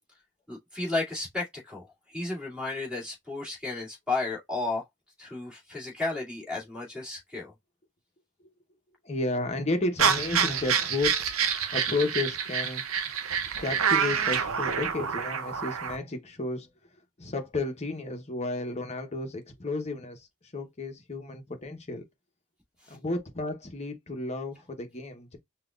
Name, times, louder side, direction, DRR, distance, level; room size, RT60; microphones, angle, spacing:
voice 1, 0.5-4.8 5.2-7.5 22.8-23.0, left 3 dB, 5° right, 2.3 m, -33 dB
voice 2, 9.0-11.3 11.7-12.8 13.6-16.7 17.2-20.3 20.5-22.0 22.9-25.4, left 2 dB, 35° left, 0.9 m, -32 dB
sound 1, 10.0-16.0, right 7 dB, 85° right, 0.6 m, -27 dB
5.7 x 2.4 x 2.4 m
head